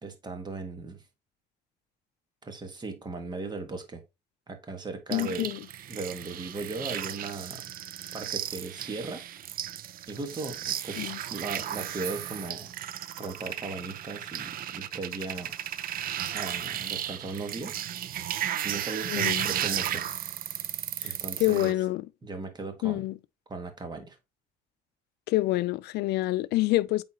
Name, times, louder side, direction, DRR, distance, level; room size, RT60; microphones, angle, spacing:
voice 1, 0.0-1.0 2.4-4.0 4.5-5.5 5.9-7.7 8.1-9.2 10.1-12.7 13.2-15.5 16.3-18.2 18.6-20.0 21.0-21.7 22.2-23.1 23.5-24.2, right 3 dB, 25° right, 1.6 m, -37 dB
voice 2, 5.1-5.6 11.0-11.2 19.1-19.5 21.0-22.0 22.8-23.2 25.3-27.0, left 17 dB, 75° left, 0.4 m, -27 dB
sound 1, 5.1-21.7, right 11 dB, 60° right, 0.6 m, -34 dB
8.3 x 4.1 x 2.9 m
cardioid pair, 110°, 17 cm